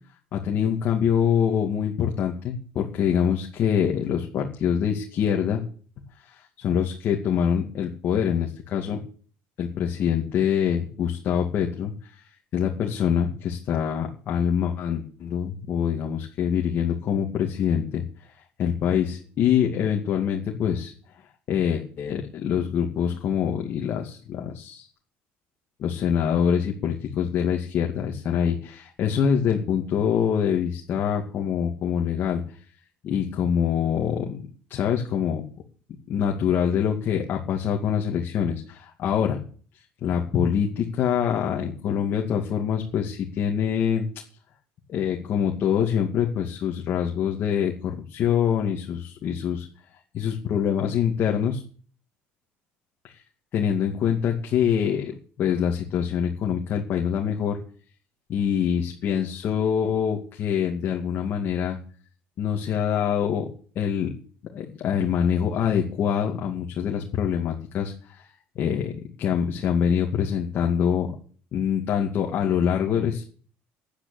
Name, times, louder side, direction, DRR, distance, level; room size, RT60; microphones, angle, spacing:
voice 1, 0.3-5.6 6.3-9.0 9.6-11.9 12.5-18.0 18.6-20.9 21.5-24.9 25.8-32.4 33.0-34.4 34.7-35.4 36.1-39.4 40.0-44.1 44.9-49.7 50.1-51.6 53.0-53.2 53.5-57.6 58.3-61.8 62.4-63.5 63.8-64.1 64.5-68.2 68.6-68.9 69.2-71.1 71.5-73.2, left 8 dB, 50° left, 1 dB, 2.4 m, -25 dB
10.5 x 10.0 x 8.6 m, 0.43 s
cardioid pair, 135°, 5 cm